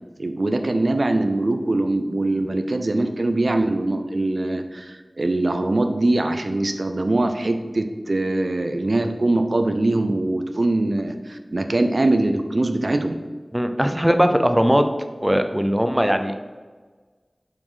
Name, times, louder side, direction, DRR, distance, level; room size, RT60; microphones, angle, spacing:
voice 1, 0.2-13.2, right 2 dB, 70° right, 7 dB, 0.5 m, -22 dB
voice 2, 13.5-14.8 15.2-16.3, equal, 10° right, 7 dB, 0.6 m, -19 dB
7.2 x 4.3 x 5.0 m, 1.4 s
wide cardioid pair, 55°, 0 cm